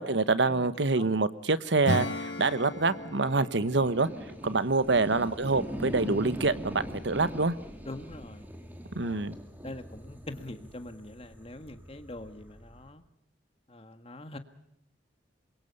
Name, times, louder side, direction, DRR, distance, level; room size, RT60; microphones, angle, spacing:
voice 1, 0.0-4.1 4.4-7.6 8.9-9.3, right 3 dB, 70° right, 14 dB, 1.1 m, -26 dB
Acoustic guitar / Strum, 1.8-6.1, left 1 dB, 85° left, 3.6 m, -37 dB
sound 1, 2.6-12.9, equal, 10° right, 2.7 m, -42 dB
voice 2, 7.9-8.5 9.0-9.3 9.6-13.0 13.7-14.4, left 1 dB, 30° left, 9 dB, 1.7 m, -43 dB
26.5 x 22.5 x 5.4 m, 0.77 s
head